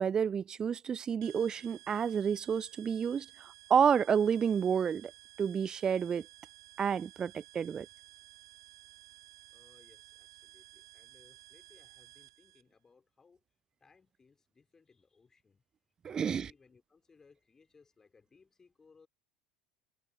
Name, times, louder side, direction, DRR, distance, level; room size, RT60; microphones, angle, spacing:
voice 1, 0.0-5.1 5.4-6.3 6.8-7.9 16.0-16.5, right 7 dB, 25° right, 0.3 m, -30 dB
sound 1, 1.2-12.6, right 16 dB, 65° right, 3.4 m, -56 dB
voice 2, 9.5-13.4 13.8-15.6 16.0-19.1, left 4 dB, 20° left, 4.7 m, -64 dB
figure-of-eight pair, 70°, 3 cm